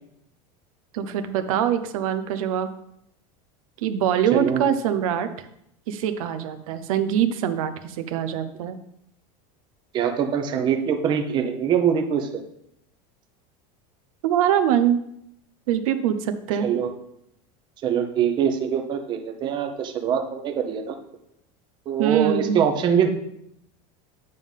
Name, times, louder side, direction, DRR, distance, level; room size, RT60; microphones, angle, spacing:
voice 1, 0.9-2.7 3.8-5.3 5.9-8.8 14.2-15.0 15.7-16.7 22.0-22.6, right 9 dB, 80° right, 10 dB, 0.7 m, -23 dB
voice 2, 4.3-4.7 9.9-12.4 16.6-16.9 17.8-21.0 21.9-23.1, right 8 dB, 25° right, 4 dB, 0.8 m, -23 dB
9.2 x 3.6 x 5.5 m, 0.75 s
supercardioid pair, 165°, 18 cm